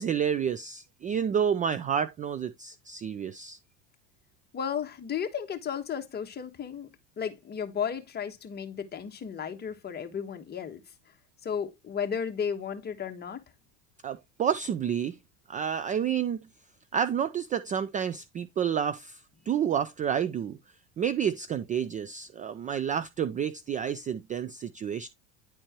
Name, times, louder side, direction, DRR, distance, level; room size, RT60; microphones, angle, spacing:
voice 1, 0.0-3.6 14.0-15.1 15.5-16.4 16.9-19.2 19.5-20.6 21.0-25.1, right 8 dB, 20° right, 0.3 m, -29 dB
voice 2, 4.5-6.9 7.2-10.8 11.4-13.4, left 7 dB, 25° left, 1.3 m, -34 dB
10.0 x 4.4 x 2.9 m
supercardioid pair, 120°, 38 cm